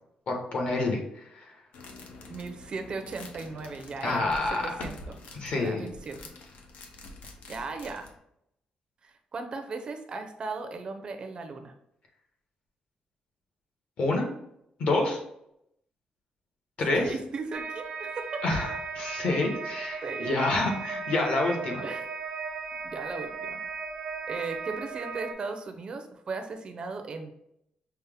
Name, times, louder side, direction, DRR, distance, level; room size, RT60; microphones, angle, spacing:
voice 1, 0.3-1.6 4.0-4.7 5.3-5.9 14.0-14.3 14.8-15.2 16.8-17.1 18.4-21.8, left 2 dB, 55° left, 1 dB, 1.0 m, -28 dB
sound 1, 1.7-8.2, left 2 dB, 85° left, 0.7 m, -46 dB
voice 2, 2.3-5.2 5.6-6.2 7.5-8.1 9.0-11.7 16.9-18.4 20.0-20.3 21.8-22.1 22.8-23.6 24.3-27.3, right 4 dB, 35° right, 6 dB, 0.4 m, -37 dB
sound 2, 17.5-25.3, right 5 dB, 80° right, 0.6 m, -36 dB
5.5 x 2.0 x 3.4 m, 0.77 s
wide cardioid pair, 165°, 3 cm